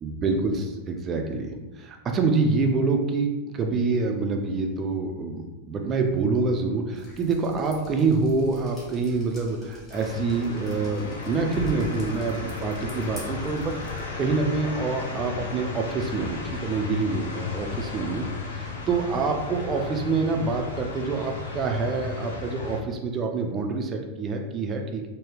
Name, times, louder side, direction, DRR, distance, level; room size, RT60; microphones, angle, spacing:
voice 1, 0.0-18.3 18.5-25.1, right 4 dB, 25° right, 3 dB, 0.4 m, -26 dB
Drip, 6.9-14.1, left 2 dB, 15° left, 1.4 m, -47 dB
sound 1, 9.9-22.8, left 4 dB, 65° left, 0.5 m, -34 dB
3.9 x 2.1 x 3.2 m, 1.1 s
figure-of-eight pair, 90°, 0 cm